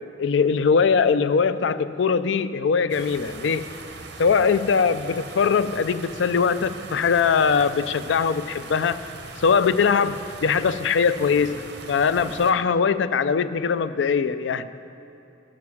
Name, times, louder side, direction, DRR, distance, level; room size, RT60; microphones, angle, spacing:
voice 1, 0.2-3.7 4.2-9.0 9.4-14.7, left 5 dB, 90° left, 13 dB, 0.4 m, -21 dB
sound 1, 2.9-12.5, right 3 dB, 65° right, 0.9 m, -40 dB
12.0 x 7.6 x 5.9 m, 2.8 s
head